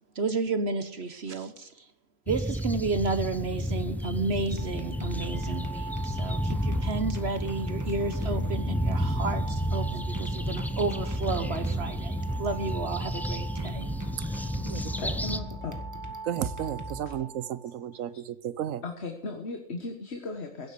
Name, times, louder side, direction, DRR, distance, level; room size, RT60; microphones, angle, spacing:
voice 1, 0.1-1.8 2.3-13.9, right 3 dB, 55° right, 1.2 m, -32 dB
sound 1, 2.3-15.4, equal, ahead, 0.5 m, -32 dB
sound 2, 4.5-17.7, right 1 dB, 15° right, 1.5 m, -37 dB
voice 2, 14.2-14.9 16.2-18.8, right 10 dB, 85° right, 1.1 m, -34 dB
voice 3, 14.8-15.8 18.8-20.7, left 3 dB, 55° left, 1.7 m, -37 dB
16.0 x 8.2 x 8.3 m
omnidirectional pair, 1.3 m